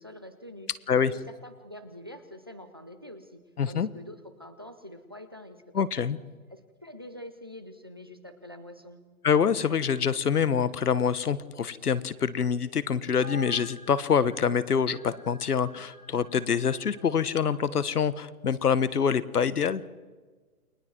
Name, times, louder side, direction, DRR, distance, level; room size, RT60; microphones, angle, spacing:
voice 1, 0.0-0.7 1.1-3.4 3.7-6.1 6.5-9.0, left 1 dB, 15° right, 10 dB, 0.6 m, -45 dB
voice 2, 3.6-3.9 5.7-6.2 9.2-19.8, left 7 dB, 80° left, 16 dB, 1.4 m, -26 dB
sound 1, 13.2-17.6, equal, 60° left, 5.7 m, -48 dB
29.5 x 20.5 x 4.6 m, 1.4 s
hypercardioid pair, 175°, 45 cm